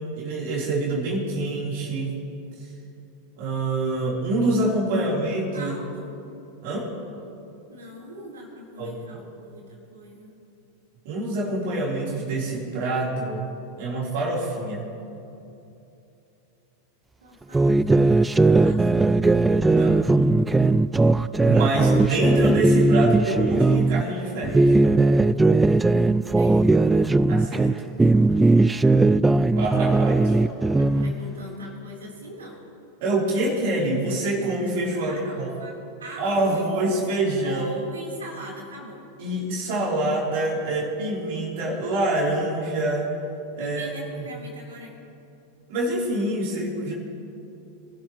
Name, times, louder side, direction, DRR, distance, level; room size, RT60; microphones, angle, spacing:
voice 1, 0.0-2.2 3.4-5.7 6.6-6.9 8.8-9.0 11.0-13.5 13.8-14.9 19.6-20.0 21.4-24.8 27.3-27.9 29.6-30.4 33.0-35.5 36.2-37.6 39.2-43.1 43.5-44.3 45.7-46.9, right 2 dB, 60° right, -4 dB, 3.7 m, -26 dB
voice 2, 5.5-6.2 7.7-10.3 17.2-19.1 26.3-27.1 30.3-30.5 30.7-32.7 35.0-36.7 37.4-39.0 43.6-44.9, right 1 dB, 85° right, -2 dB, 3.8 m, -41 dB
sound 1, 17.5-24.0 24.4-27.7 28.0-31.1, right 2 dB, 10° right, 0.3 m, -18 dB
25.0 x 12.5 x 3.1 m, 2.8 s
hypercardioid pair, 95°, 0 cm